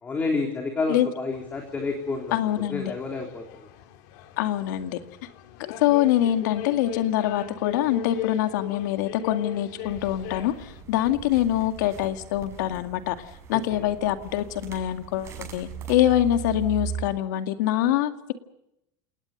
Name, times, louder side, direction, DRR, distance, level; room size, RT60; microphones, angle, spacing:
voice 1, 0.0-2.3 2.7-3.7 13.5-13.9, left 3 dB, 15° left, 2 dB, 3.4 m, -30 dB
sound 1, 1.3-10.8, left 10 dB, 60° left, 3.1 m, -39 dB
voice 2, 2.3-2.9 4.4-5.0 5.8-13.2 13.5-18.3, left 12 dB, 80° left, 8 dB, 2.1 m, -24 dB
sound 2, 9.8-17.0, right 8 dB, 25° right, 6.8 m, -39 dB
29.0 x 19.0 x 6.7 m, 0.81 s
supercardioid pair, 165°, 10 cm